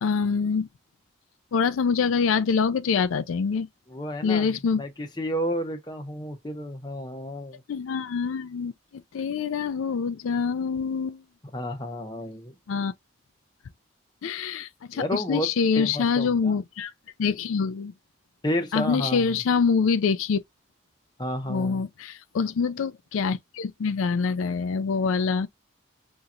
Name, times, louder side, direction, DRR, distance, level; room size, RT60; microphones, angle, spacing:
voice 1, 0.0-0.7 1.5-3.7 4.2-4.8 7.7-11.2 12.7-12.9 14.2-16.9 17.2-17.9 18.7-20.4 21.5-25.5, left 5 dB, 90° left, 0.4 m, -25 dB
voice 2, 3.9-7.6 11.5-12.5 14.9-15.5 15.8-16.6 18.4-19.3 21.2-21.8, equal, 20° left, 0.8 m, -31 dB
5.3 x 2.8 x 2.4 m
head